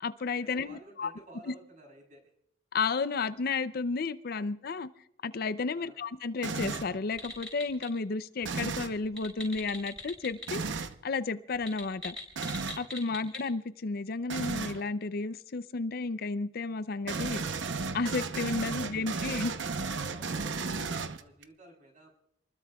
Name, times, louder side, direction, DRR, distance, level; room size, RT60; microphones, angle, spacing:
voice 1, 0.0-1.1 2.7-4.9 5.2-10.6 11.0-12.2 12.8-17.4 17.9-19.5, left 4 dB, 55° left, 0.5 m, -32 dB
voice 2, 0.5-2.3 5.7-6.0 18.5-22.1, right 1 dB, 45° right, 7.1 m, -54 dB
sound 1, 6.4-7.0 8.4-9.0 10.5-10.9 12.4-12.9 14.3-14.8 17.1-21.4, right 4 dB, 85° right, 0.8 m, -34 dB
sound 2, 7.1-7.9 9.0-10.5 10.7-10.8 11.5-13.4, left 1 dB, 5° left, 4.7 m, -42 dB
27.5 x 20.5 x 2.3 m
head